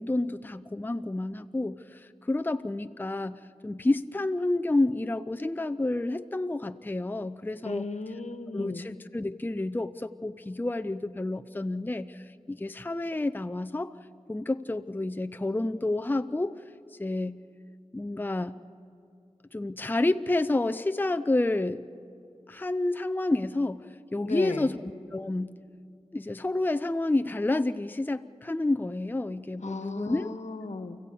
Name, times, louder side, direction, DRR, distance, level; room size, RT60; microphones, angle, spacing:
voice 1, 0.0-7.9 8.5-13.9 14.3-16.5 17.0-17.4 17.9-18.5 19.5-21.8 22.5-23.8 24.1-24.8 25.1-25.6 26.1-30.3, left 2 dB, 15° left, 9 dB, 0.6 m, -29 dB
voice 2, 7.6-8.9 24.2-24.7 29.6-31.0, left 3 dB, 80° left, 9 dB, 1.3 m, -35 dB
29.5 x 15.0 x 8.5 m, 2.4 s
wide cardioid pair, 60°, 12 cm